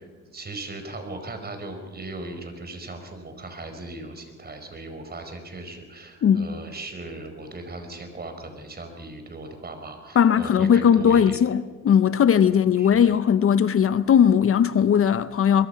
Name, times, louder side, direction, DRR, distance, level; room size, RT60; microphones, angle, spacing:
voice 1, 0.3-11.4 12.5-13.2, right 2 dB, 30° right, 4.7 m, -38 dB
voice 2, 6.2-6.5 10.2-15.7, left 8 dB, 50° left, 0.8 m, -18 dB
23.0 x 22.5 x 5.7 m
cardioid pair, 90°, 30 cm